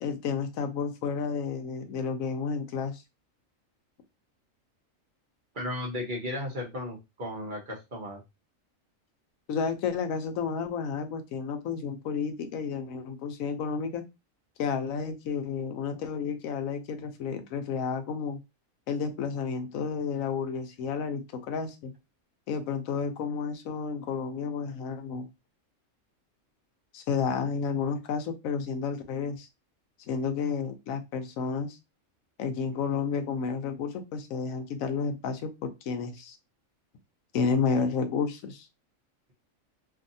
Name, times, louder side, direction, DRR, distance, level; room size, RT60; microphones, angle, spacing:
voice 1, 0.0-3.0 9.5-14.0 14.6-18.4 18.9-21.9 22.5-25.3 26.9-29.5 30.1-31.8 32.4-36.4 37.3-38.7, left 5 dB, 90° left, 8 dB, 1.0 m, -31 dB
voice 2, 5.5-8.2, left 1 dB, 50° right, 0 dB, 0.7 m, -35 dB
2.6 x 2.6 x 2.6 m, 0.23 s
omnidirectional pair, 1.4 m